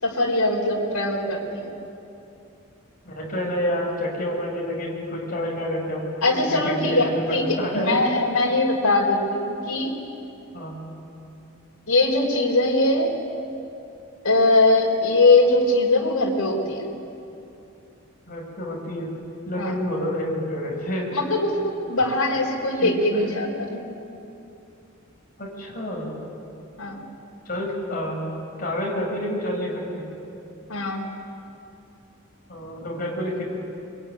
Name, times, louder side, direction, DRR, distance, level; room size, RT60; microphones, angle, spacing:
voice 1, 0.0-1.7 6.2-9.9 11.9-13.2 14.2-16.8 19.6-19.7 21.1-21.6 21.9-23.8 26.8-27.0 30.7-31.0, left 2 dB, 85° left, -1 dB, 4.2 m, -21 dB
voice 2, 3.0-8.0 10.5-10.8 18.3-19.1 19.4-21.1 22.8-23.2 25.4-26.1 27.4-28.2 28.6-30.1 32.5-33.5, equal, 40° left, -2 dB, 6.6 m, -28 dB
24.5 x 23.0 x 9.8 m, 2.8 s
head